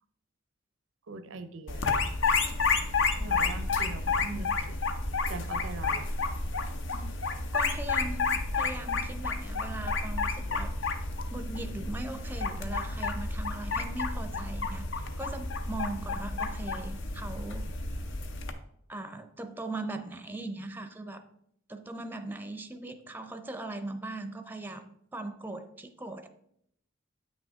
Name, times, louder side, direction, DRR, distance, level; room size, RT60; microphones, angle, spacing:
voice 1, 1.1-1.9 3.2-4.7 5.3-6.2, right 3 dB, 85° right, 11 dB, 0.6 m, -41 dB
sound 1, 1.7-18.5, left 4 dB, 65° left, 0.7 m, -31 dB
voice 2, 7.5-10.7 11.3-17.7 18.9-21.2 21.7-26.3, right 2 dB, 10° right, 8 dB, 0.5 m, -39 dB
8.3 x 6.2 x 3.5 m, 0.73 s
head